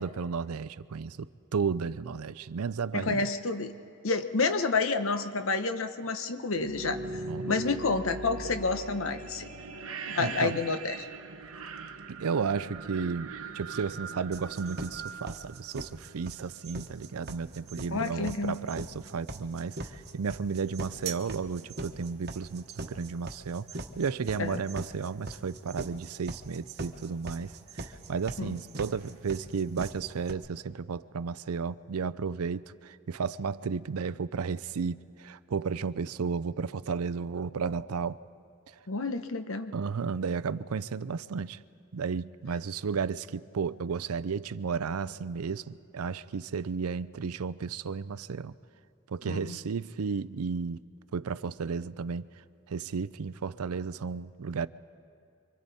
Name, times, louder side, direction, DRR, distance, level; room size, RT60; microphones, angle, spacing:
voice 1, 0.0-3.3 7.3-7.5 10.2-10.6 12.1-13.3 13.5-23.7 24.0-38.2 39.7-41.6 41.9-48.5 49.1-50.8 51.1-52.3 52.7-54.7, right 5 dB, 90° right, 16 dB, 0.5 m, -33 dB
voice 2, 2.9-3.8 4.0-7.0 7.5-9.4 10.1-10.9 17.9-18.6 24.4-24.6 28.4-28.6 38.9-39.7 49.2-49.6, left 3 dB, 70° left, 9 dB, 1.0 m, -29 dB
sound 1, 6.5-16.3, right 3 dB, 75° right, 1.0 m, -40 dB
sound 2, 14.3-30.3, right 2 dB, 50° right, 1.2 m, -40 dB
28.0 x 24.5 x 4.2 m, 2.4 s
head